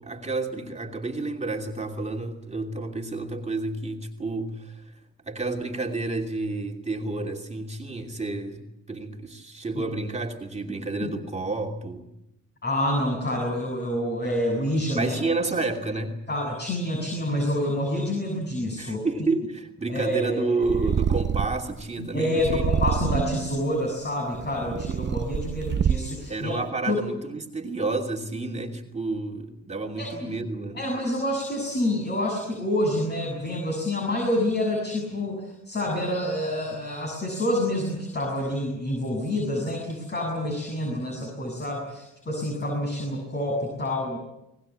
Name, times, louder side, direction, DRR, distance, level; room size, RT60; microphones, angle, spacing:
voice 1, 0.0-4.9 5.3-12.1 14.9-16.1 18.8-22.7 26.3-30.9, right 3 dB, 20° right, 1 dB, 2.8 m, -30 dB
voice 2, 12.6-15.2 16.3-19.1 19.9-20.5 22.0-26.5 26.9-27.0 30.0-30.4 30.7-44.2, left 1 dB, 35° left, 1 dB, 7.4 m, -27 dB
Purr, 20.6-21.7 22.4-23.5 24.2-26.3, right 7 dB, 35° right, 0.8 m, -26 dB
22.5 x 19.5 x 8.7 m, 0.86 s
cardioid pair, 90°, 30 cm